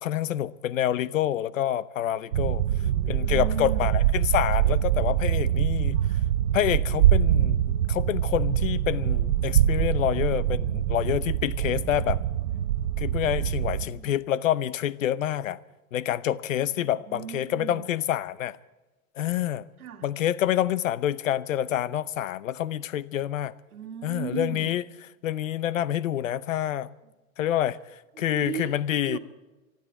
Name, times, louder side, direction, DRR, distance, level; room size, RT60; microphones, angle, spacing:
voice 1, 0.0-2.6 3.1-6.0 6.5-12.2 13.0-15.6 15.9-18.6 19.2-19.7 20.0-23.5 24.0-24.8 25.2-26.9 27.4-29.2, left 11 dB, 65° left, 0.8 m, -27 dB
sound 1, 2.3-13.8, right 10 dB, 50° right, 0.8 m, -24 dB
voice 2, 2.7-4.0 5.9-6.2 13.4-14.2 16.8-17.9 19.8-20.1 23.7-24.7 27.0-27.1 28.1-28.8 29.1-29.2, right 9 dB, 80° right, 2.1 m, -38 dB
25.0 x 12.0 x 4.6 m
supercardioid pair, 175°, 43 cm